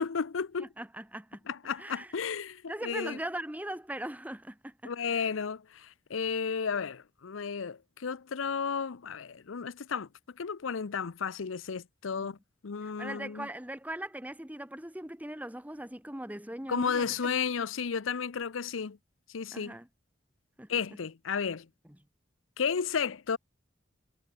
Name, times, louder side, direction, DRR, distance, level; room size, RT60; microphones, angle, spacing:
voice 1, 0.0-0.7 1.5-3.2 4.8-10.1 10.4-12.4 12.6-13.5 16.7-19.0 19.3-19.7 20.7-21.7 22.6-23.4, left 6 dB, 85° left, 0.6 m, -33 dB
voice 2, 0.6-1.4 1.8-2.1 2.7-5.2 12.8-17.1 19.5-19.9 20.6-20.7, right 1 dB, 10° right, 1.5 m, -40 dB
head